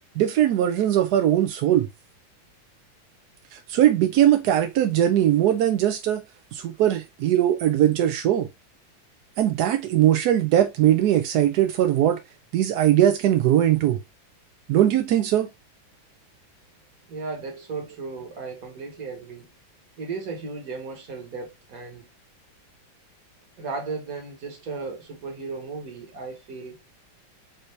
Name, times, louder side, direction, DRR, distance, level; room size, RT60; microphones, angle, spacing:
voice 1, 0.2-1.9 3.5-6.2 6.5-8.5 9.4-12.2 12.5-14.0 14.7-15.5, right 11 dB, 75° right, 0.9 m, -20 dB
voice 2, 17.1-19.5 20.0-22.1 23.6-26.8, right 4 dB, 50° right, 1.7 m, -35 dB
5.5 x 2.7 x 3.2 m
omnidirectional pair, 2.1 m